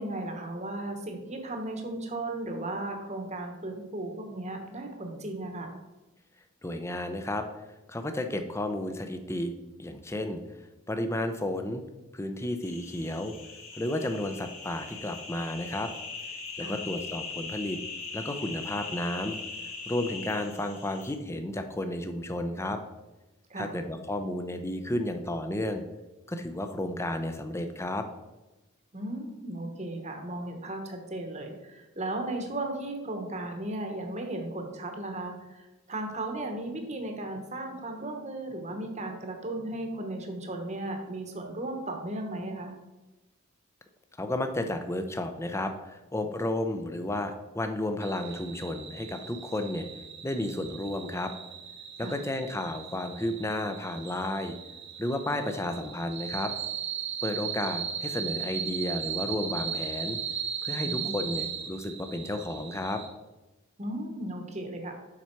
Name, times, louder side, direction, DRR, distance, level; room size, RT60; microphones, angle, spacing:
voice 1, 0.0-5.8 16.6-16.8 23.5-23.8 28.9-42.8 52.0-52.2 60.8-61.3 63.8-64.9, right 1 dB, 30° right, 4 dB, 1.0 m, -36 dB
voice 2, 6.6-7.5 7.9-9.5 9.8-10.4 10.9-11.8 12.1-13.3 13.8-15.9 16.6-17.8 18.1-19.4 19.9-22.8 23.6-25.8 26.3-28.1 44.2-49.9 50.2-51.3 52.0-54.6 55.0-56.5 57.2-60.2 60.6-63.0, left 1 dB, 10° left, 7 dB, 0.5 m, -32 dB
sound 1, 12.6-21.2, left 4 dB, 75° left, 1.9 m, -40 dB
sound 2, 48.0-63.1, right 8 dB, 55° right, 1.0 m, -37 dB
7.4 x 5.6 x 4.5 m, 1.1 s
head